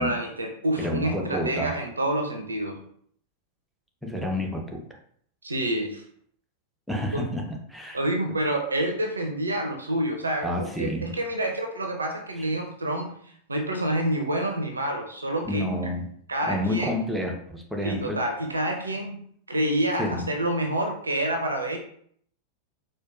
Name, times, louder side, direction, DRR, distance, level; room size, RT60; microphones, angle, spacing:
voice 1, 0.0-2.8 5.4-6.0 7.1-7.2 7.9-13.1 13.5-15.7 16.3-16.9 17.8-19.2 19.5-21.8, right 1 dB, 75° right, 3 dB, 0.5 m, -28 dB
voice 2, 0.8-1.8 4.0-4.8 6.9-8.0 10.4-11.1 12.4-12.5 15.4-16.1 16.5-18.2 20.0-20.2, left 1 dB, 5° right, 0 dB, 0.7 m, -29 dB
4.5 x 2.3 x 2.4 m, 0.63 s
figure-of-eight pair, 90°, 0 cm